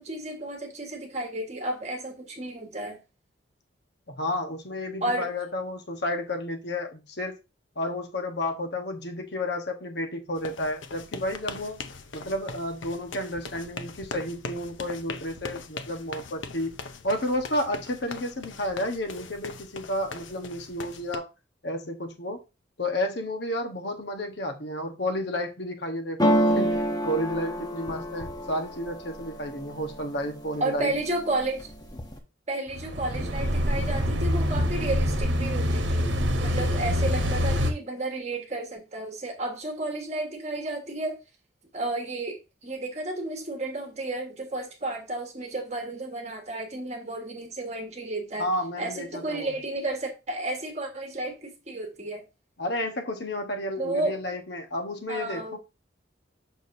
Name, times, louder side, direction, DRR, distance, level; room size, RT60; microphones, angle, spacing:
voice 1, 0.0-3.0 5.0-5.3 30.6-31.7 32.5-36.1 36.4-41.2 41.7-48.5 48.8-52.2 53.8-54.1 55.1-55.6, right 2 dB, 35° right, 1.5 m, -32 dB
voice 2, 4.1-7.4 7.8-11.8 12.1-16.8 17.0-21.3 21.6-22.4 22.8-30.9 48.4-49.5 52.6-55.6, left 1 dB, 60° left, 1.2 m, -31 dB
sound 1, 10.4-21.2, left 4 dB, 80° left, 0.7 m, -41 dB
sound 2, 26.2-30.1 30.5-31.1 31.4-32.2, equal, 20° left, 1.0 m, -27 dB
sound 3, 32.7-37.7, equal, 75° right, 1.0 m, -25 dB
6.9 x 6.2 x 2.7 m
head